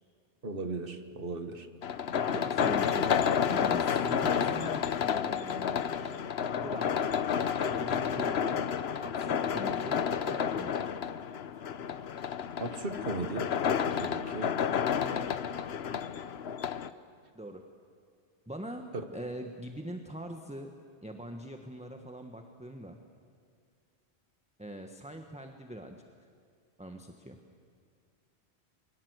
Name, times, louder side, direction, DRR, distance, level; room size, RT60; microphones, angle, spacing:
voice 1, 0.4-1.7 12.6-13.5 14.0-14.5 18.9-19.0, right 3 dB, 55° right, 7 dB, 1.8 m, -36 dB
sound 1, 1.8-16.9, left 7 dB, 65° left, 1.1 m, -30 dB
voice 2, 2.3-3.2 3.5-6.1 6.6-7.0 7.8-8.6 9.0-10.9 15.0-15.3 17.3-17.6 18.5-18.8 19.1-20.7 21.0-23.0 24.6-26.0 26.8-27.4, right 1 dB, 5° right, 4 dB, 1.3 m, -42 dB
29.0 x 22.5 x 8.1 m, 2.3 s
omnidirectional pair, 1.2 m